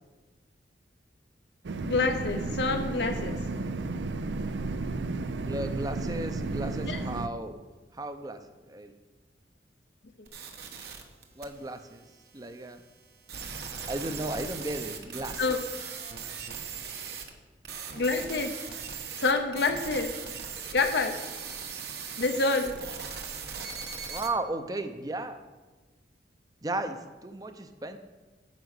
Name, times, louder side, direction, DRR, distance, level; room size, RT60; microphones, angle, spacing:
sound 1, 1.6-7.3, right 3 dB, 85° right, 0.5 m, -33 dB
voice 1, 1.8-3.4 6.9-7.0 15.4-15.6 18.0-18.5 19.2-20.1 20.7-21.1 22.2-22.7, left 3 dB, 70° left, 5 dB, 0.7 m, -27 dB
voice 2, 5.4-7.6 7.9-8.4 8.7-8.9 11.4-12.0 12.3-12.8 13.9-15.6 24.1-25.4 26.6-28.0, right 2 dB, 20° right, 8 dB, 0.6 m, -35 dB
sound 2, 10.3-11.4 13.3-17.3 17.6-24.3, right 6 dB, 65° right, 1.1 m, -39 dB
9.5 x 6.2 x 6.5 m, 1.2 s
head